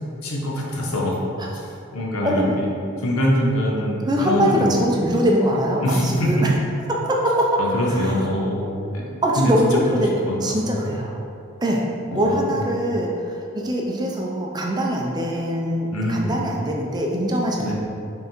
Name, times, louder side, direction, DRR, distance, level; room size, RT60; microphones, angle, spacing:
voice 1, 0.2-1.2 1.5-2.7 3.0-4.8 5.8-6.4 7.6-10.9 12.1-12.6 15.9-16.3 17.6-17.7, equal, 85° left, -3 dB, 1.2 m, -24 dB
voice 2, 2.2-2.5 4.1-6.5 6.9-7.6 7.9-8.2 9.2-10.1 10.4-11.3 11.6-11.9 12.1-17.7, equal, 20° right, -1 dB, 0.5 m, -22 dB
5.6 x 3.8 x 4.4 m, 2.6 s
head